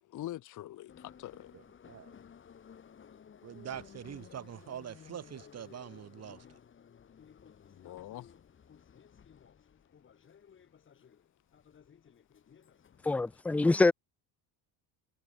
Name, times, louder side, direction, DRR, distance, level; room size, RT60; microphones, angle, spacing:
voice 1, 0.0-1.6 7.7-8.3, left 14 dB, 40° left, 1.2 m, -44 dB
Subway metro underground, 0.9-13.4, left 7 dB, 25° left, 2.8 m, -56 dB
voice 2, 3.4-6.4, right 9 dB, 35° right, 4.8 m, -44 dB
voice 3, 13.0-13.9, left 3 dB, 5° left, 0.3 m, -25 dB
cardioid pair, 175°, 45 cm